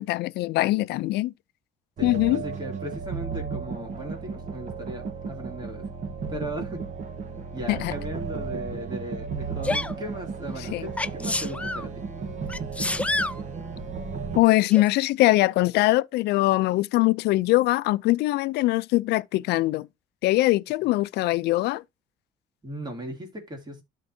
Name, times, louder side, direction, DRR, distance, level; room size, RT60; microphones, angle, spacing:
voice 1, 0.0-1.3 2.0-2.4 7.7-7.9 10.7-10.9 14.4-19.9 20.2-21.8, left 18 dB, 75° left, 0.4 m, -22 dB
voice 2, 2.0-5.9 6.3-6.8 7.5-12.0 22.6-23.8, equal, 25° right, 2.4 m, -37 dB
sound 1, 2.0-14.4, right 5 dB, 45° right, 1.3 m, -34 dB
Sneeze, 9.6-9.9 11.0-11.9 12.5-13.4 14.7-14.8, left 2 dB, 10° left, 0.4 m, -28 dB
12.5 x 4.5 x 2.7 m
cardioid pair, 110°, 17 cm